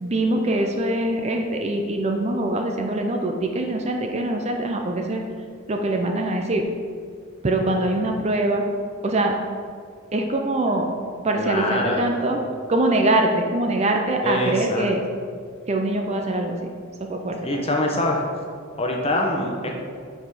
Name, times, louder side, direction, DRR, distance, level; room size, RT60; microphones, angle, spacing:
voice 1, 0.0-5.2 5.7-6.7 7.4-8.6 9.0-9.3 10.1-10.9 11.2-12.4 12.7-15.0 15.7-16.7 17.0-17.7, right 2 dB, 30° right, 3 dB, 0.5 m, -23 dB
voice 2, 11.3-12.1 14.2-14.9 17.4-18.2 18.8-19.7, left 1 dB, 30° left, 0 dB, 0.9 m, -24 dB
5.4 x 5.0 x 6.1 m, 2.1 s
head